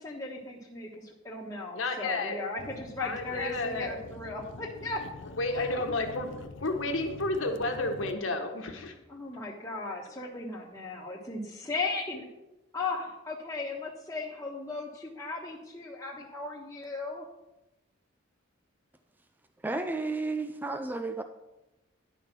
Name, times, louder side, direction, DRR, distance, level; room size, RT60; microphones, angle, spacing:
voice 1, 0.0-5.0 5.5-5.8 9.1-12.3 12.7-17.2, left 3 dB, 15° left, -7 dB, 1.2 m, -36 dB
voice 2, 1.7-2.4 3.0-3.9 5.4-8.9, left 2 dB, 85° left, 4 dB, 1.4 m, -31 dB
sound 1, 2.6-8.2, left 3 dB, 65° left, 0.5 m, -46 dB
voice 3, 19.6-21.2, right 3 dB, 10° right, 8 dB, 0.4 m, -32 dB
10.5 x 5.1 x 6.0 m, 0.99 s
head